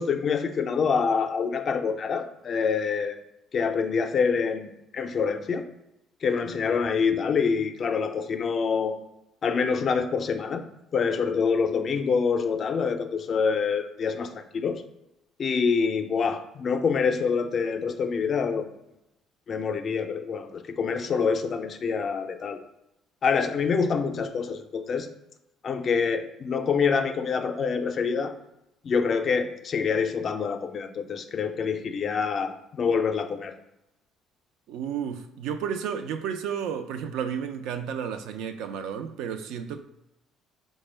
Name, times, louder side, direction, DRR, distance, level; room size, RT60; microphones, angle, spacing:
voice 1, 0.0-3.2 3.5-5.6 6.2-9.0 9.4-10.6 10.9-14.8 15.4-18.7 19.5-22.6 23.2-25.1 25.6-28.3 28.8-33.5, left 5 dB, 45° left, 0.4 m, -26 dB
voice 2, 34.7-39.8, right 7 dB, 80° right, 0.3 m, -32 dB
4.2 x 2.1 x 3.3 m
supercardioid pair, 80°, 0 cm